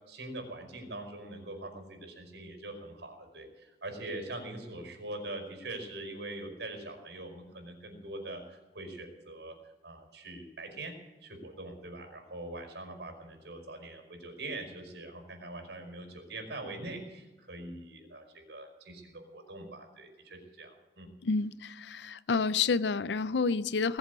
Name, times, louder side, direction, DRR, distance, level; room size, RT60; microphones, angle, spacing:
voice 1, 0.1-9.5 9.8-10.9 11.2-21.1, right 2 dB, 85° right, 5.2 m, -43 dB
voice 2, 21.2-24.0, left 4 dB, 80° left, 0.5 m, -29 dB
21.0 x 7.7 x 8.3 m
head